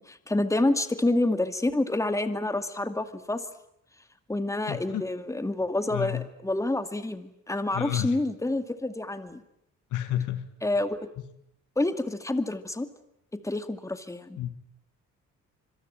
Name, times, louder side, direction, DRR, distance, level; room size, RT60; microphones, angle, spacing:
voice 1, 0.0-3.4 4.3-9.4 10.6-11.0 11.8-12.9 13.4-14.4, left 2 dB, 10° left, 9 dB, 2.2 m, -28 dB
voice 2, 4.7-5.0 5.9-6.3 7.7-8.2 9.9-10.5 14.4-14.5, left 12 dB, 80° left, 10 dB, 2.3 m, -30 dB
26.0 x 22.5 x 8.9 m, 0.75 s
cardioid pair, 90°, 30 cm